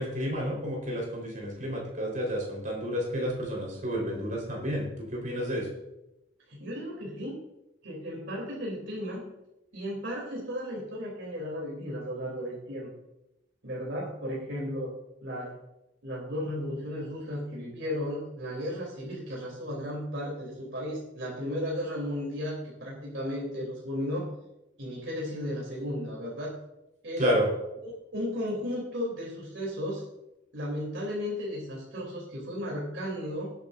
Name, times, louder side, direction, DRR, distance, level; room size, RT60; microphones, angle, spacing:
voice 1, 0.0-5.7 27.2-27.5, equal, 45° right, -2 dB, 4.4 m, -30 dB
voice 2, 6.5-7.4 7.8-9.3 9.7-12.9 13.6-14.9 15.2-15.5 16.0-24.3 24.8-26.5 27.0-27.2 27.8-30.0 30.5-33.5, equal, 70° right, -4 dB, 3.3 m, -34 dB
19.0 x 9.1 x 2.7 m, 0.91 s
head